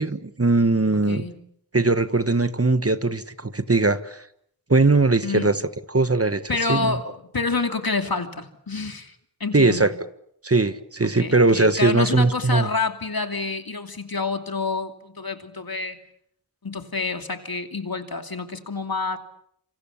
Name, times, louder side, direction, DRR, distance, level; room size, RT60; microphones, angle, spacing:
voice 1, 0.0-1.2 1.7-4.2 4.7-5.6 5.9-6.4 6.7-7.0 9.5-9.9 10.4-12.7, right 3 dB, 35° right, 12 dB, 1.5 m, -20 dB
voice 2, 1.1-1.4 5.2-5.5 6.5-9.1 9.4-9.9 11.0-16.0 16.6-19.2, left 3 dB, 65° left, 6 dB, 2.8 m, -28 dB
27.5 x 26.0 x 7.2 m, 0.70 s
wide cardioid pair, 50°, 38 cm